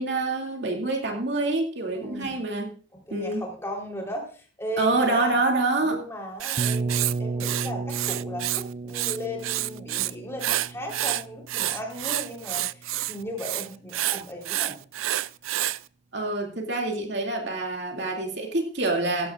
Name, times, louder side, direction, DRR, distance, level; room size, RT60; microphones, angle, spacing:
voice 1, 0.0-2.7 3.1-3.4 4.8-6.0 16.1-19.3, right 2 dB, 60° right, 1 dB, 2.6 m, -26 dB
voice 2, 1.9-2.4 2.9-5.4 5.8-14.8, equal, 15° left, 0 dB, 3.8 m, -36 dB
Writing, 6.4-8.6 8.9-10.1 10.4-15.8, right 14 dB, 90° right, 0.4 m, -28 dB
sound 1, 6.6-12.3, right 3 dB, 35° right, 0.5 m, -33 dB
16.5 x 14.5 x 2.5 m, 0.41 s
head